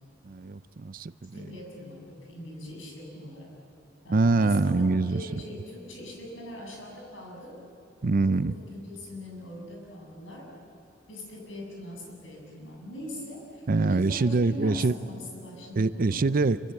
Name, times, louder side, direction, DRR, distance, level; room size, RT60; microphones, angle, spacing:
voice 1, 0.2-1.5 4.1-5.3 8.0-8.5 13.7-14.9 15.8-16.7, right 3 dB, 50° right, 15 dB, 0.5 m, -24 dB
voice 2, 1.3-3.5 4.0-7.6 8.2-10.5 11.1-16.3, left 1 dB, 90° left, 0 dB, 7.7 m, -41 dB
26.5 x 24.5 x 8.4 m, 2.7 s
head